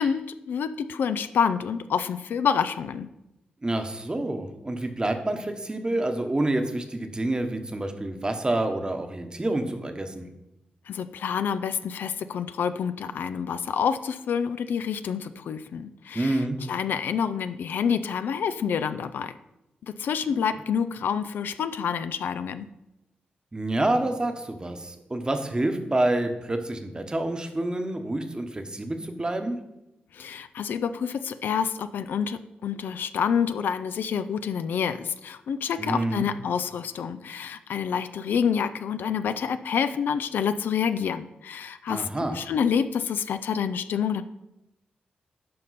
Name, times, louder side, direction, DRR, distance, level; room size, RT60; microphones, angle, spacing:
voice 1, 0.0-3.1 10.9-19.3 19.8-22.7 30.1-44.2, left 7 dB, 80° left, 12 dB, 0.4 m, -28 dB
voice 2, 3.6-10.3 16.1-16.6 23.5-29.6 35.8-36.3 41.9-42.4, right 1 dB, 25° right, 6 dB, 1.0 m, -28 dB
9.5 x 5.3 x 4.1 m, 0.91 s
cardioid pair, 60°, 3 cm